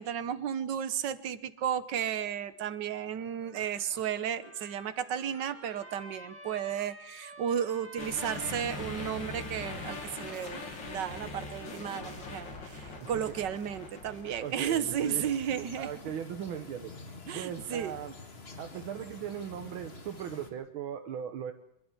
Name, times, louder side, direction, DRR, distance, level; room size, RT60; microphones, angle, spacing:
voice 1, 0.0-15.9 17.3-17.9, right 9 dB, 65° right, 14 dB, 1.6 m, -33 dB
Trumpet, 3.4-11.3, equal, 5° right, 4.2 m, -51 dB
sound 1, 8.0-15.6, left 3 dB, 65° left, 3.3 m, -42 dB
voice 2, 13.0-13.3 14.4-15.2 15.5-16.9 17.3-18.1 18.6-21.5, right 9 dB, 90° right, 6 dB, 1.8 m, -38 dB
sound 2, 14.9-20.5, left 3 dB, 30° left, 2.0 m, -48 dB
25.0 x 11.0 x 9.8 m, 0.79 s
omnidirectional pair, 2.2 m